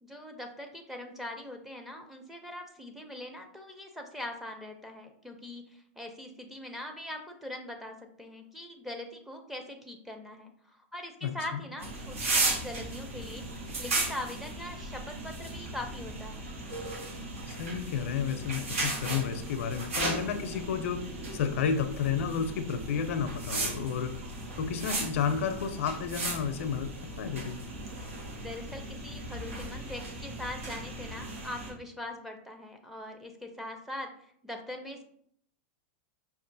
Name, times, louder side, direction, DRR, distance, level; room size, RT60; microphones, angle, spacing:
voice 1, 0.0-13.5 13.8-16.4 28.3-34.1 34.4-35.0, left 1 dB, 5° right, 2 dB, 0.5 m, -42 dB
voice 2, 11.2-11.6 17.5-21.0 21.3-24.1 24.6-26.9 27.2-27.6, left 7 dB, 75° left, 9 dB, 0.4 m, -31 dB
sound 1, 11.8-31.7, right 2 dB, 85° right, 1.1 m, -36 dB
5.4 x 2.4 x 2.6 m, 0.64 s
supercardioid pair, 145°, 7 cm